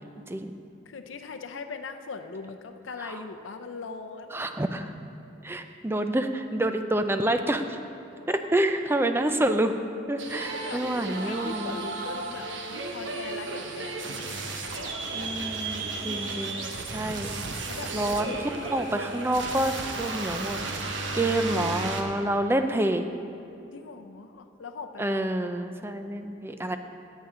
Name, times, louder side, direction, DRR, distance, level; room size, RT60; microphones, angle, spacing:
voice 1, 0.9-4.5 8.2-8.6 10.3-15.0 17.7-19.0 23.7-25.2, left 4 dB, 90° left, 6 dB, 0.6 m, -41 dB
voice 2, 4.3-4.9 5.4-7.8 8.3-9.8 10.1-11.8 15.1-17.3 17.9-18.3 18.7-23.0 25.0-26.8, right 1 dB, 10° right, 7 dB, 0.4 m, -28 dB
sound 1, 10.2-22.0, right 3 dB, 80° right, 1.0 m, -34 dB
16.5 x 8.3 x 3.8 m, 2.7 s
head